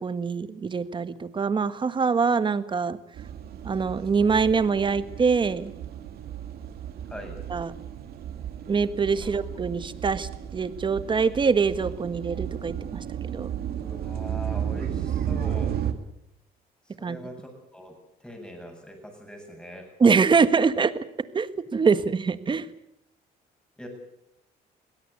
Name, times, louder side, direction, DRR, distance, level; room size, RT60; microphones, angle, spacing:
voice 1, 0.0-3.0 3.6-5.7 7.5-7.7 8.7-13.0 13.3-13.5 17.0-17.2 20.0-21.0 21.3-22.7, right 5 dB, 30° right, 13 dB, 1.4 m, -24 dB
sound 1, 3.2-15.9, right 9 dB, 65° right, 2.4 m, -33 dB
voice 2, 7.1-7.4 9.2-9.3 13.7-15.8 17.0-17.4 17.7-17.9 18.2-19.9 23.8-23.9, equal, 5° left, 3 dB, 8.0 m, -41 dB
23.0 x 17.5 x 8.5 m, 0.81 s
cardioid pair, 110°, 17 cm